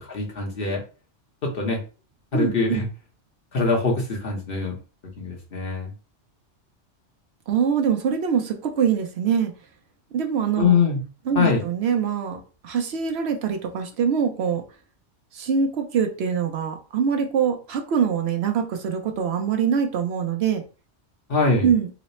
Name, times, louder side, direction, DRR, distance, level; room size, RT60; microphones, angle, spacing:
voice 1, 0.1-0.8 1.4-1.8 2.3-2.9 3.5-4.7 5.2-5.9 10.6-11.0 11.3-11.6 21.3-21.7, left 4 dB, 55° left, 0 dB, 1.0 m, -23 dB
voice 2, 2.3-2.8 7.5-9.5 10.1-10.7 11.3-14.6 15.3-20.6 21.6-21.9, right 7 dB, 65° right, 5 dB, 0.8 m, -24 dB
3.1 x 2.0 x 4.1 m, 0.34 s
omnidirectional pair, 1.2 m